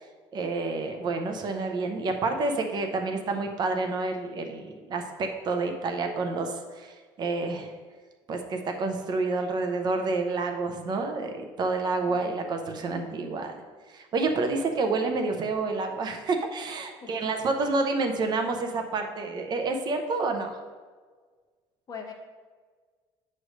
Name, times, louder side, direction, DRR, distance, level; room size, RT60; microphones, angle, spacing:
voice 1, 0.3-7.7 8.3-13.5 13.9-20.6, right 3 dB, 40° right, 5 dB, 0.7 m, -29 dB
voice 2, 17.0-17.5 21.9-22.1, left 6 dB, 35° left, 2 dB, 1.0 m, -42 dB
7.7 x 3.2 x 6.4 m, 1.5 s
cardioid pair, 140°, 11 cm